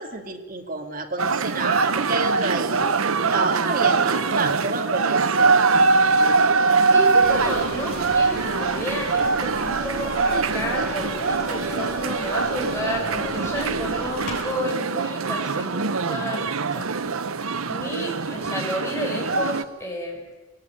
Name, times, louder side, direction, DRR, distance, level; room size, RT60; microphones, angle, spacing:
voice 1, 0.0-2.8 3.3-5.5, right 3 dB, 40° right, 3 dB, 2.6 m, -29 dB
sound 1, 1.2-19.6, right 4 dB, 80° right, 0.9 m, -23 dB
voice 2, 6.9-16.9 17.6-20.2, equal, 15° left, -1 dB, 6.4 m, -31 dB
sound 2, 7.2-14.5, left 1 dB, 45° left, 7.9 m, -36 dB
22.5 x 18.5 x 9.7 m, 1.2 s
head